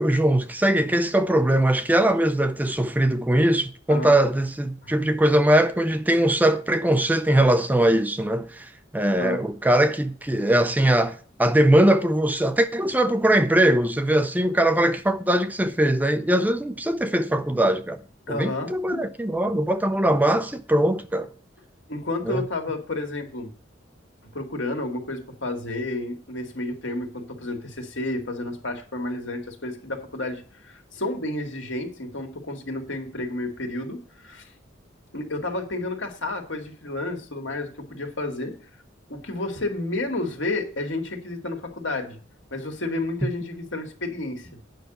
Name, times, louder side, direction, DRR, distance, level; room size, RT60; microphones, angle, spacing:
voice 1, 0.0-18.0 18.3-21.3 22.3-22.4, right 1 dB, 10° right, 0.5 m, -21 dB
voice 2, 9.1-9.4 18.3-19.1 21.9-23.5 24.3-34.5 35.1-38.5 39.1-42.2 42.5-44.5, left 2 dB, 75° left, 2.2 m, -31 dB
9.1 x 5.7 x 7.9 m
head